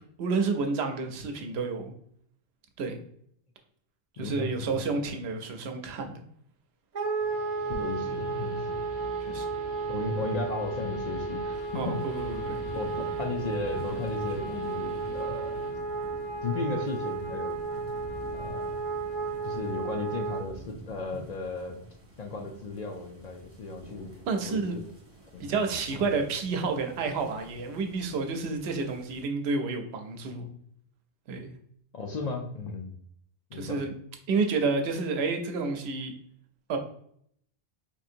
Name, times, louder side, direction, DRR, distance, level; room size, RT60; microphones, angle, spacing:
voice 1, 0.2-1.9 2.8-3.0 4.2-6.2 9.3-9.5 11.7-12.6 24.3-24.8 25.4-30.5 31.3-31.5 33.5-33.9 34.3-36.1 36.7-36.8, right 4 dB, 90° right, 5 dB, 0.9 m, -30 dB
voice 2, 4.2-4.9 7.7-8.8 9.9-11.9 12.7-12.8 13.2-15.6 16.4-17.6 18.3-18.8 19.4-21.8 22.2-24.1 24.4-24.8 25.3-25.5 25.9-26.0 31.9-32.9 33.5-33.8, left 3 dB, 55° left, 2 dB, 0.5 m, -35 dB
Wind instrument woodwind instrument, 6.9-20.4, right 4 dB, 50° right, 0.6 m, -33 dB
Guitar, 7.0-15.7, left 2 dB, 85° left, 1.8 m, -44 dB
sound 1, 11.5-29.2, right 2 dB, 35° right, 1.4 m, -49 dB
4.4 x 2.7 x 2.5 m, 0.68 s
omnidirectional pair, 1.0 m